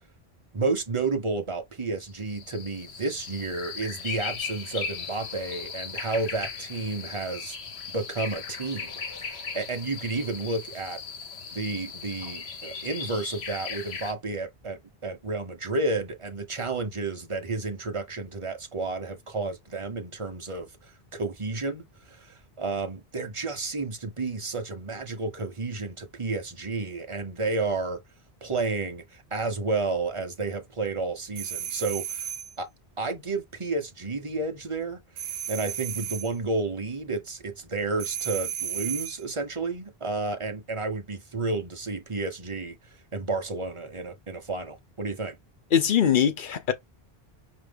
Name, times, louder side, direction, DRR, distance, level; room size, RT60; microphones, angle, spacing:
voice 1, 0.5-7.6 7.9-11.0 11.5-28.0 28.4-32.3 32.6-32.7 33.0-45.4, right 3 dB, 30° right, 1.0 m, -31 dB
sound 1, 2.1-14.1, left 6 dB, 75° left, 1.2 m, -38 dB
sound 2, 31.4-32.6 35.2-36.4 38.0-39.2, right 10 dB, 65° right, 0.8 m, -33 dB
voice 2, 45.7-46.7, left 8 dB, 55° left, 0.9 m, -22 dB
5.0 x 2.9 x 3.5 m
omnidirectional pair, 1.1 m